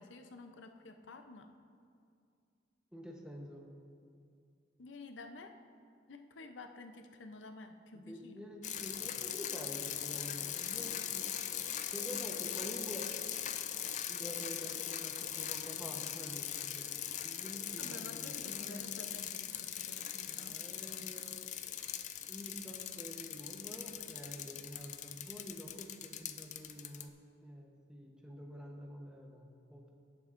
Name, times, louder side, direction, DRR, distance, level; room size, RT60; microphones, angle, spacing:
voice 1, 0.0-1.5 4.8-5.6 6.1-8.4 17.8-20.6, left 3 dB, 85° left, 6 dB, 0.6 m, -51 dB
voice 2, 2.9-3.7 7.9-11.3 11.9-13.1 14.1-16.9 17.2-19.0 20.3-21.4 22.3-27.2 27.4-29.9, equal, 5° right, 0 dB, 0.9 m, -48 dB
sound 1, 8.6-27.1, left 10 dB, 40° left, 0.4 m, -40 dB
18.0 x 7.0 x 2.5 m, 2.4 s
head